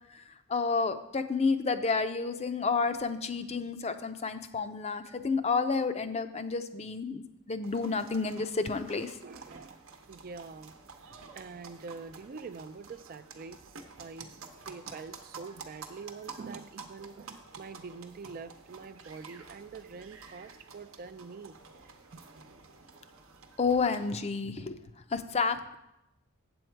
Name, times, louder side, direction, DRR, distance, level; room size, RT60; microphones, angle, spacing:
voice 1, 0.1-9.2 23.6-24.8 25.1-25.8, left 4 dB, 30° left, 9 dB, 0.5 m, -30 dB
sound 1, 7.6-24.2, right 4 dB, 70° right, 0.9 m, -50 dB
voice 2, 9.2-10.7 11.3-21.6 22.1-22.3, right 4 dB, 45° right, 11 dB, 0.4 m, -45 dB
7.9 x 7.8 x 4.5 m, 0.88 s
head